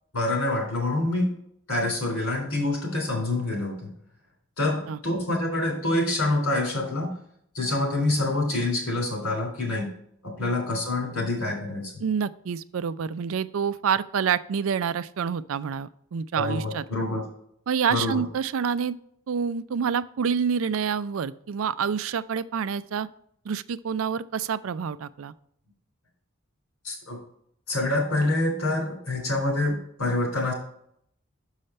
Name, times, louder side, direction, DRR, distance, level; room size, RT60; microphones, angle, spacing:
voice 1, 0.1-1.3 1.7-3.9 4.6-7.1 7.5-9.9 10.2-11.9 16.3-17.2 17.9-18.2 26.8-27.2 27.7-30.5, left 2 dB, 90° left, 1 dB, 3.2 m, -26 dB
voice 2, 12.0-16.8 17.7-18.9 19.3-23.1 23.5-25.3, right 7 dB, 80° right, 15 dB, 0.4 m, -27 dB
6.6 x 5.6 x 4.2 m, 0.69 s
head